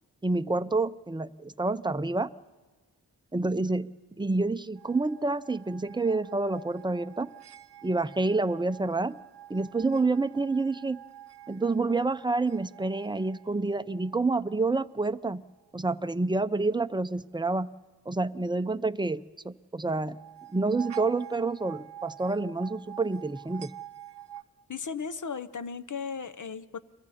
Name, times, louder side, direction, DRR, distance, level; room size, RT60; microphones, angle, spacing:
voice 1, 0.2-2.3 3.3-3.9 4.2-7.3 7.8-9.2 9.5-11.0 11.5-15.4 15.7-17.7 18.1-20.2 20.5-23.7, right 3 dB, 10° right, 12 dB, 0.6 m, -28 dB
sound 1, 4.8-14.6 20.0-24.4, right 12 dB, 85° right, 0.8 m, -47 dB
voice 2, 24.7-26.8, left 5 dB, 50° left, 13 dB, 0.9 m, -36 dB
30.0 x 22.5 x 4.3 m, 1.3 s
cardioid pair, 45°, 40 cm